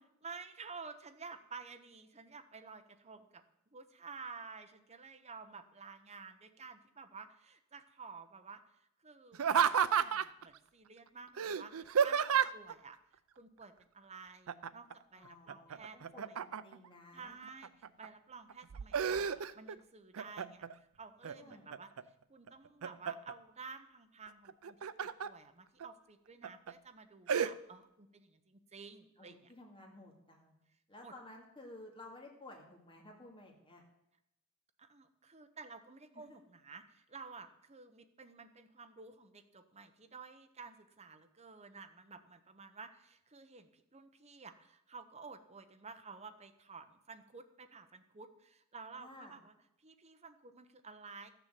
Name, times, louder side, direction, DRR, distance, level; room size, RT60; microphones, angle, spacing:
voice 1, 0.2-3.4 3.7-13.0 13.3-16.0 16.3-16.4 17.1-21.9 22.3-29.5 31.0-31.1 34.8-49.5 49.8-51.3, right 4 dB, 30° right, 7 dB, 1.0 m, -52 dB
Laughter, 9.3-10.4 11.4-12.7 14.5-14.9 15.3-16.9 17.4-18.1 18.5-19.8 20.1-20.7 21.2-22.0 22.5-23.3 24.5-25.3 25.8-25.9 26.4-26.7 27.3-27.5, right 7 dB, 70° right, 0.5 m, -32 dB
voice 2, 15.2-17.3 21.3-21.6 29.2-30.5 30.9-33.8 36.1-36.2 49.0-49.3, left 2 dB, 25° left, 0 dB, 2.5 m, -54 dB
13.5 x 6.9 x 7.7 m, 0.83 s
head